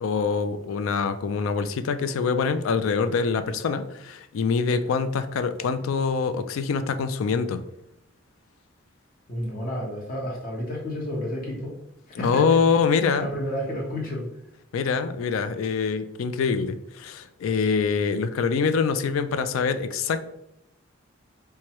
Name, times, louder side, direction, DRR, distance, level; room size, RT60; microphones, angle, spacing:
voice 1, 0.0-7.6 12.2-13.3 14.7-20.2, left 5 dB, 90° left, 10 dB, 0.4 m, -24 dB
voice 2, 9.3-11.8 12.1-12.6 13.2-14.3, equal, 45° left, -3 dB, 1.1 m, -31 dB
4.5 x 2.2 x 2.9 m, 0.80 s
head